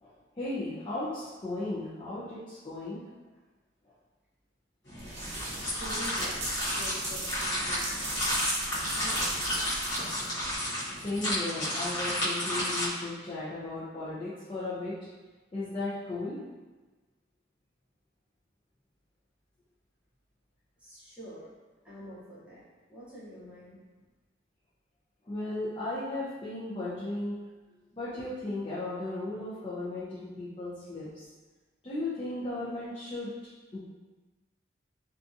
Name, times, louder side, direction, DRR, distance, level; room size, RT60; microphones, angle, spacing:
voice 1, 0.4-3.0 11.0-14.9 15.5-16.4 25.2-27.4 27.9-31.2 31.8-33.3 33.7-33.8, left 2 dB, 25° left, -9 dB, 0.5 m, -35 dB
sound 1, 4.9-12.9, equal, 65° left, 1.1 m, -32 dB
sound 2, 5.0-10.5, right 2 dB, 60° right, 0.7 m, -37 dB
voice 2, 5.8-6.4 6.7-8.2 8.9-9.7 20.8-21.5 21.8-22.6 22.9-23.8, equal, 5° right, -11 dB, 0.8 m, -46 dB
2.7 x 2.3 x 2.5 m, 1.2 s
head